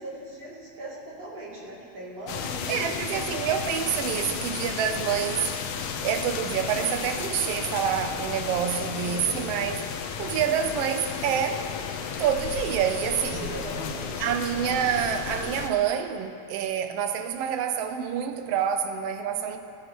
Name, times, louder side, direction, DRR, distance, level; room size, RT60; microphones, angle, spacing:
voice 1, 0.0-3.1 8.7-9.4 13.0-14.4 19.3-19.6, right 2 dB, 55° right, -7 dB, 3.9 m, -40 dB
sound 1, 2.3-15.7, left 6 dB, 75° left, 2.0 m, -33 dB
voice 2, 2.7-5.5 6.0-9.8 10.2-11.6 12.2-13.5 14.2-19.6, right 8 dB, 80° right, 7 dB, 1.3 m, -27 dB
19.0 x 15.0 x 3.0 m, 2.4 s
omnidirectional pair, 3.5 m